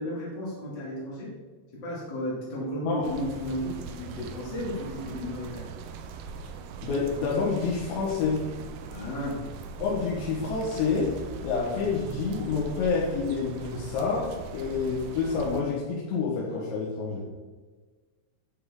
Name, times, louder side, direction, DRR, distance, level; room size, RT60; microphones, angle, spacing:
voice 1, 0.0-1.3 1.7-5.7 8.9-9.4, left 1 dB, 30° left, -6 dB, 2.1 m, -34 dB
sound 1, 3.0-15.6, right 5 dB, 85° right, 3.4 m, -41 dB
voice 2, 6.8-8.5 9.8-17.3, left 4 dB, 65° left, -5 dB, 3.6 m, -28 dB
11.0 x 10.0 x 3.8 m, 1.4 s
omnidirectional pair, 6.0 m